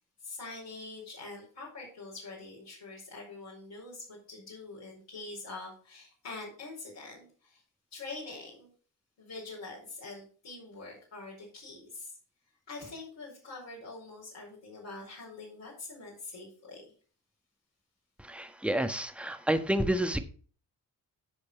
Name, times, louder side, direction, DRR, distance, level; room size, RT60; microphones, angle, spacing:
voice 1, 0.2-7.6 7.9-8.7 9.2-12.2 12.7-16.9, left 3 dB, 65° left, -5 dB, 5.0 m, -44 dB
voice 2, 18.2-20.2, right 1 dB, 5° right, 8 dB, 1.4 m, -29 dB
13.5 x 5.2 x 4.5 m, 0.43 s
hypercardioid pair, 45°, 46 cm